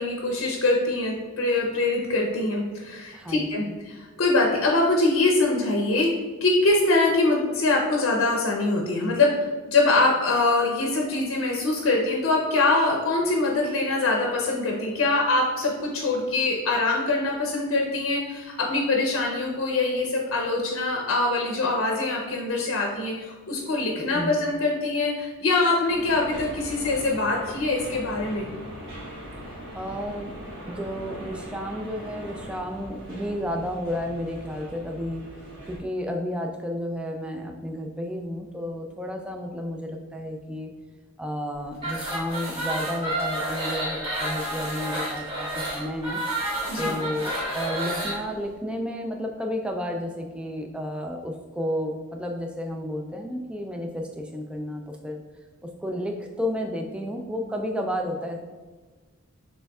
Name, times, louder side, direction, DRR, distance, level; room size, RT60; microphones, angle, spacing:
voice 1, 0.0-6.1 6.4-28.5 46.6-46.9, left 2 dB, 70° left, 0 dB, 0.6 m, -23 dB
voice 2, 3.1-3.8 24.1-24.4 29.7-35.2 35.7-40.7 41.2-46.2 46.8-55.2 55.6-58.4, equal, 5° right, 2 dB, 0.3 m, -32 dB
sound 1, 25.9-35.8, equal, 55° right, 1.4 m, -40 dB
sound 2, 41.7-48.2, right 1 dB, 25° right, 1.4 m, -30 dB
6.7 x 3.3 x 2.3 m, 1.4 s
head